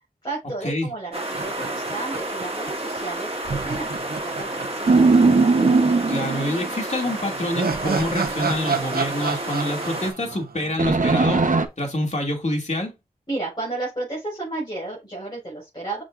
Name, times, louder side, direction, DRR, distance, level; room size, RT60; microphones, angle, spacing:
voice 1, 0.2-5.0 13.3-16.0, right 2 dB, 30° left, 4.7 m, -32 dB
sound 1, 1.1-10.1, right 1 dB, 40° right, 1.8 m, -31 dB
sound 2, 1.3-2.7 3.0-3.1 3.4-5.7 5.9-6.0 7.0-11.4, right 5 dB, 90° right, 0.8 m, -30 dB
sound 3, 4.9-6.7 10.8-11.7, right 3 dB, 60° right, 0.9 m, -18 dB
voice 2, 6.1-12.9, left 1 dB, 50° left, 2.3 m, -27 dB
6.7 x 6.1 x 2.5 m
wide cardioid pair, 55°, 15 cm